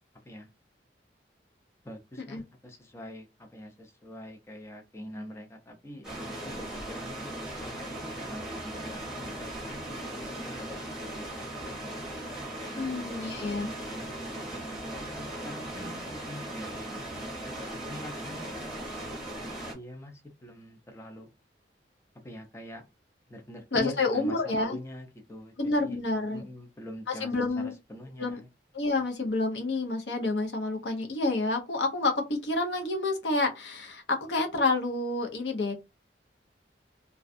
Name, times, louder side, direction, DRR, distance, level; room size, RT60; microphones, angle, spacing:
voice 1, 1.8-10.8 11.1-11.9 12.7-17.0 17.7-18.8 19.7-21.3 22.2-22.9 23.3-26.0 26.3-28.5, left 1 dB, 15° left, 0.5 m, -44 dB
sound 1, 6.0-19.7, right 1 dB, 5° right, 0.9 m, -38 dB
voice 2, 12.8-13.7 23.7-24.8 25.6-26.4 27.1-27.7 28.2-28.4 28.7-35.7, left 3 dB, 80° left, 0.8 m, -29 dB
2.4 x 2.2 x 2.5 m
head